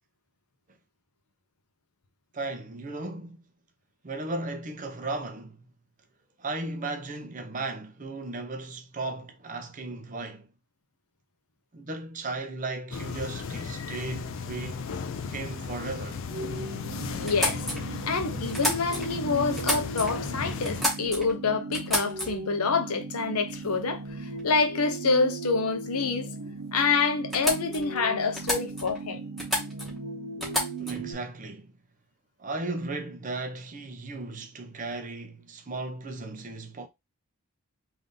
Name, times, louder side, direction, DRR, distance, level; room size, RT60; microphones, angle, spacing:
voice 1, 2.3-3.4 4.0-5.7 6.4-10.5 11.7-14.9 15.3-16.2 30.8-31.8 32.4-36.9, right 2 dB, 35° right, 0.6 m, -36 dB
sound 1, 12.9-20.8, left 5 dB, 60° left, 0.4 m, -35 dB
sound 2, 16.3-31.1, right 3 dB, 80° right, 1.0 m, -38 dB
voice 2, 17.2-17.6 18.1-24.0 24.4-26.3 26.7-29.2, left 4 dB, 80° left, 0.7 m, -27 dB
sound 3, 17.2-19.2 19.5-20.2 20.6-21.4 21.7-22.5 23.5-23.7 24.1-24.5 26.4-26.5 26.8-26.9 27.3-27.9 28.3-29.0 29.4-30.0 30.4-31.1, equal, ahead, 1.3 m, -31 dB
3.5 x 2.6 x 3.7 m
head